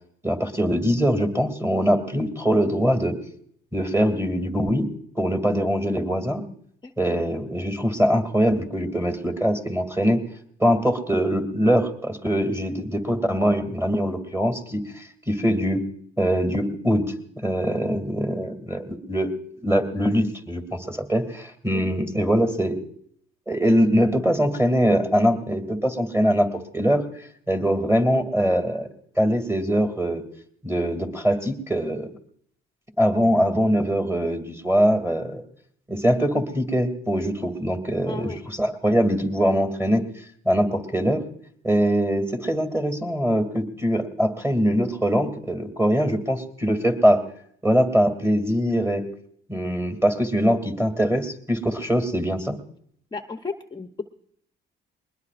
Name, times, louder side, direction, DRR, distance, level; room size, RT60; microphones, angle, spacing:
voice 1, 0.2-3.2 3.7-4.9 5.2-6.4 7.0-10.2 10.6-15.8 16.2-17.1 17.4-19.3 19.6-22.8 23.5-27.0 27.5-28.9 29.2-30.2 30.6-32.1 33.0-35.4 35.9-40.0 40.4-41.2 41.6-47.2 47.6-49.0 49.5-52.6, equal, 10° right, 6 dB, 2.6 m, -22 dB
voice 2, 38.1-38.4 53.1-54.0, left 4 dB, 20° left, 5 dB, 0.9 m, -34 dB
21.5 x 20.5 x 2.5 m, 0.65 s
cardioid pair, 90°, 20 cm